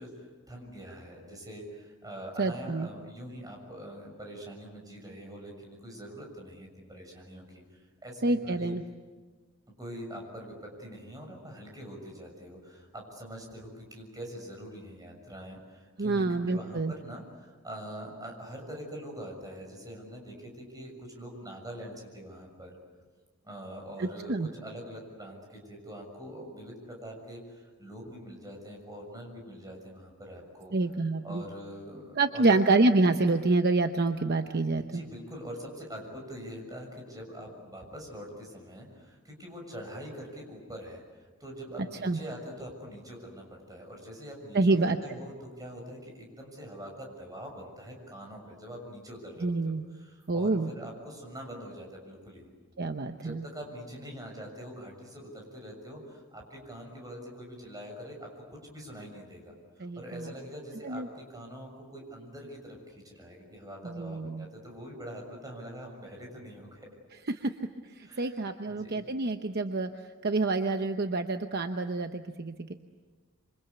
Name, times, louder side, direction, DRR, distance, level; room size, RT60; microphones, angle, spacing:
voice 1, 0.0-8.7 9.8-22.8 23.4-30.7 31.2-32.6 34.8-52.5 53.1-66.9 68.0-68.4 68.6-69.0, equal, 15° right, 1 dB, 6.8 m, -44 dB
voice 2, 2.4-2.9 8.2-8.8 16.0-16.9 24.0-24.5 30.7-31.4 32.2-35.0 42.0-42.2 44.5-45.0 49.4-49.8 50.3-50.7 52.8-53.4 59.8-60.3 60.8-61.1 63.8-64.4 67.3-67.5 67.9-69.9 70.2-72.7, right 3 dB, 50° right, 7 dB, 0.9 m, -27 dB
27.0 x 25.0 x 8.2 m, 1.4 s
head